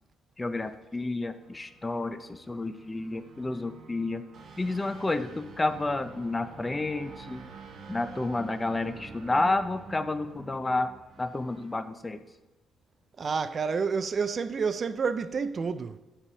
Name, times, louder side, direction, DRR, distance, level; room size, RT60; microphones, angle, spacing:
voice 1, 0.4-4.2 4.6-7.4 7.9-10.9 11.2-12.2, left 2 dB, 20° left, 0.4 m, -30 dB
sound 1, 1.4-11.7, right 4 dB, 60° right, 0.8 m, -48 dB
voice 2, 13.2-16.0, right 5 dB, 45° right, 0.3 m, -29 dB
7.2 x 3.4 x 5.6 m
cardioid pair, 90°, 0 cm